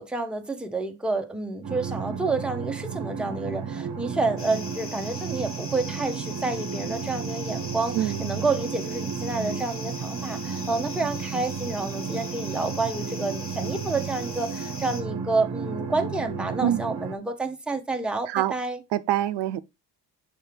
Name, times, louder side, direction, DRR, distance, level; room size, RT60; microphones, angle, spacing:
voice 1, 0.0-18.8, right 3 dB, ahead, 0.7 m, -29 dB
sound 1, 1.6-17.2, right 6 dB, 50° right, 0.8 m, -33 dB
sound 2, 4.4-15.0, left 3 dB, 30° left, 1.2 m, -41 dB
voice 2, 18.9-19.6, right 13 dB, 80° right, 0.5 m, -24 dB
6.7 x 4.4 x 3.3 m
cardioid pair, 130°, 40 cm